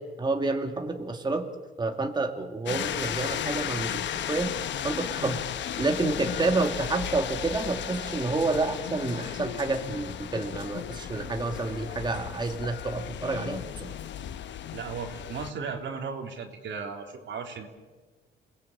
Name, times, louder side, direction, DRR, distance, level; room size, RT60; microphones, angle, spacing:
voice 1, 0.0-1.5 1.8-4.5 4.8-5.4 5.8-13.9, right 3 dB, 20° right, 4 dB, 2.3 m, -29 dB
sound 1, 2.7-15.5, left 10 dB, 65° left, 1.0 m, -35 dB
voice 2, 14.7-17.7, right 5 dB, 70° right, 3 dB, 3.5 m, -36 dB
28.0 x 19.0 x 8.9 m, 1.3 s
cardioid pair, 90°, 20 cm